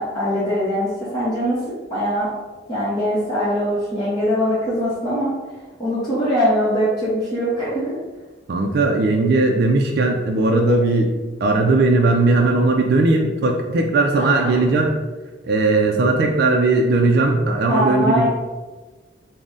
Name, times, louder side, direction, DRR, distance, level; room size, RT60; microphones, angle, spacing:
voice 1, 0.0-1.6 1.9-2.3 2.7-5.3 5.8-8.0 14.1-14.7 17.7-18.3, equal, 25° left, -10 dB, 0.8 m, -22 dB
voice 2, 8.5-11.1 11.4-14.9 15.5-18.3, right 2 dB, 55° right, 1 dB, 0.4 m, -18 dB
3.8 x 2.1 x 3.6 m, 1.3 s
head